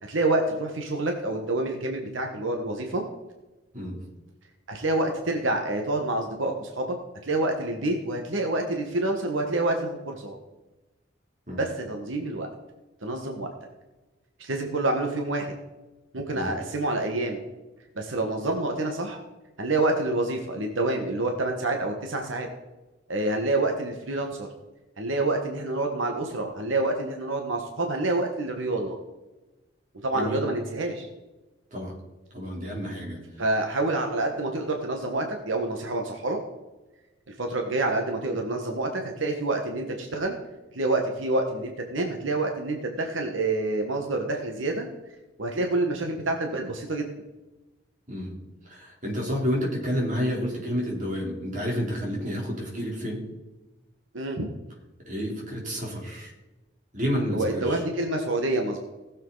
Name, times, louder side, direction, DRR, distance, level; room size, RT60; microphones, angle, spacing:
voice 1, 0.0-3.0 4.7-6.9 7.2-10.3 11.6-12.5 13.0-13.5 14.4-15.5 16.1-17.4 18.0-19.2 19.6-22.5 23.1-24.5 25.0-29.0 30.0-31.1 33.4-36.4 37.4-40.4 40.7-44.9 45.4-47.1 54.1-54.5 57.3-58.8, right 2 dB, 80° right, 3 dB, 1.5 m, -27 dB
voice 2, 32.3-33.2 48.1-48.4 48.6-53.2 55.1-56.3 56.9-57.8, equal, 40° right, -1 dB, 3.6 m, -30 dB
19.0 x 7.5 x 4.0 m, 1.1 s
head